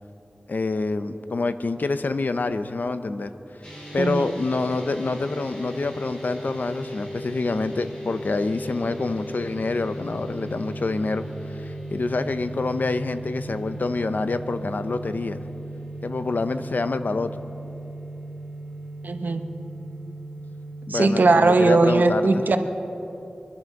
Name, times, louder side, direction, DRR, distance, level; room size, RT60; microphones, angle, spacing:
voice 1, 0.5-3.3 3.9-15.4 16.0-17.3 20.9-22.4, left 3 dB, 70° left, 10 dB, 0.7 m, -27 dB
sound 1, 3.6-21.9, right 1 dB, 35° left, 4.8 m, -37 dB
voice 2, 4.0-4.3 19.0-19.4 20.9-22.6, right 3 dB, 75° right, 7 dB, 1.0 m, -19 dB
24.0 x 11.5 x 5.3 m, 2.9 s
wide cardioid pair, 75°, 3 cm